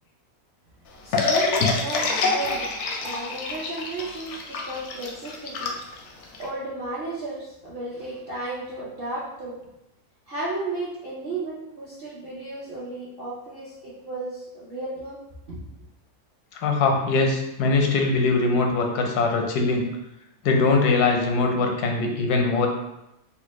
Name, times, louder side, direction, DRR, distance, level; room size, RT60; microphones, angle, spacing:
voice 1, 1.0-2.7 3.0-5.8 6.4-9.6 10.3-15.2 15.5-15.6, right 2 dB, 55° right, -8 dB, 0.6 m, -33 dB
sound 1, 1.1-6.4, left 4 dB, 65° left, 0.7 m, -26 dB
voice 2, 16.5-19.9 20.4-22.7, left 3 dB, 85° left, 2 dB, 1.2 m, -22 dB
4.1 x 2.1 x 3.0 m, 0.87 s
omnidirectional pair, 1.7 m